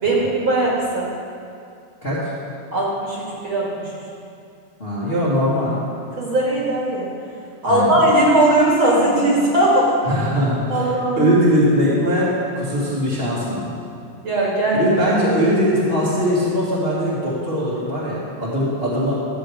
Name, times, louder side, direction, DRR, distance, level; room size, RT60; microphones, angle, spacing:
voice 1, 0.0-1.1 2.7-3.2 3.4-3.9 6.2-7.1 7.6-9.9 10.7-11.3 14.2-14.9, right 1 dB, 40° right, -5 dB, 2.1 m, -18 dB
voice 2, 4.8-5.8 7.6-8.0 10.0-13.7 14.7-19.2, equal, 25° left, -8 dB, 1.3 m, -21 dB
13.0 x 7.8 x 4.9 m, 2.4 s
omnidirectional pair, 4.1 m